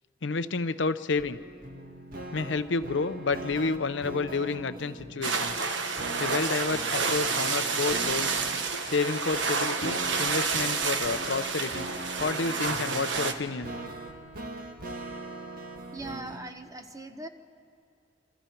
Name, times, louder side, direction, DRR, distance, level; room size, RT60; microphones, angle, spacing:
voice 1, 0.2-1.4 2.3-5.6 6.2-8.4 8.8-11.9 12.2-13.7, left 4 dB, 85° left, 11 dB, 0.7 m, -30 dB
sound 1, 1.2-16.5, right 1 dB, 55° right, 1.7 m, -41 dB
sound 2, 5.2-13.3, right 4 dB, 80° right, 1.4 m, -29 dB
voice 2, 15.9-17.3, right 2 dB, 20° right, 7 dB, 1.0 m, -40 dB
27.5 x 24.5 x 4.6 m, 2.5 s
head